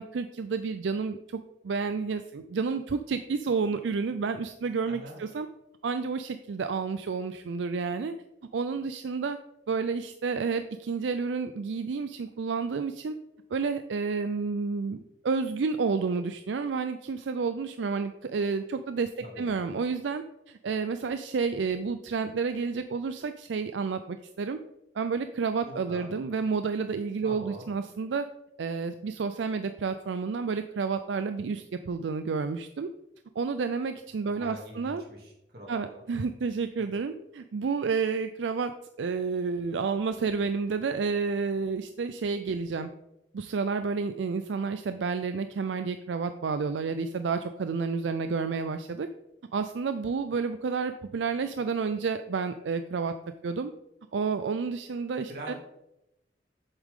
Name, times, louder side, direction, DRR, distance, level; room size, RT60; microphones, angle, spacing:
voice 1, 0.0-5.5 5.8-8.1 8.5-9.4 9.7-13.2 13.5-24.6 25.0-28.3 28.6-32.9 33.4-35.0 35.7-42.9 43.3-49.1 49.5-53.1 53.4-53.7 54.1-55.5, right 5 dB, 80° right, 10 dB, 0.4 m, -30 dB
voice 2, 4.9-5.2 19.2-19.5 25.6-26.2 27.2-27.9 34.2-36.0 55.3-55.6, equal, 55° right, -1 dB, 2.6 m, -44 dB
8.0 x 7.4 x 3.6 m, 0.88 s
head